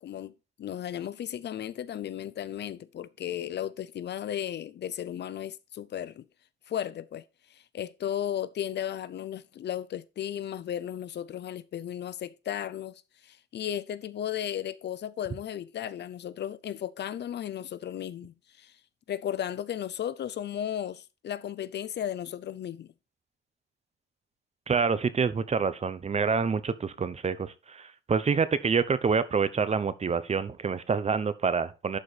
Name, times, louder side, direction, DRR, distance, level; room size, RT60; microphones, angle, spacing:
voice 1, 0.0-0.3 0.6-6.3 6.7-7.2 7.5-18.7 19.1-22.9, left 10 dB, 60° left, 0.5 m, -35 dB
voice 2, 24.7-32.0, right 5 dB, 35° right, 0.8 m, -27 dB
11.5 x 5.0 x 4.1 m
cardioid pair, 120°, 20 cm